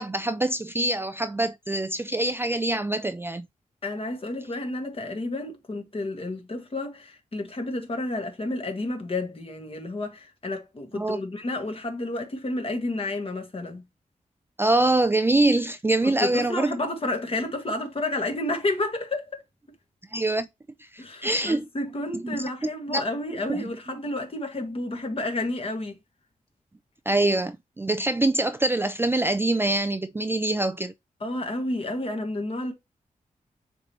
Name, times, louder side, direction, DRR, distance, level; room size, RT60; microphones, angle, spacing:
voice 1, 0.0-3.5 11.0-11.2 14.6-16.7 20.1-20.5 20.9-21.7 22.1-23.0 23.5-23.7 27.1-30.9, right 2 dB, 15° right, 0.3 m, -24 dB
voice 2, 3.8-13.8 16.0-19.4 21.0-26.0 31.2-32.7, left 2 dB, 40° left, 1.7 m, -31 dB
9.3 x 3.4 x 3.0 m
wide cardioid pair, 100°, 14 cm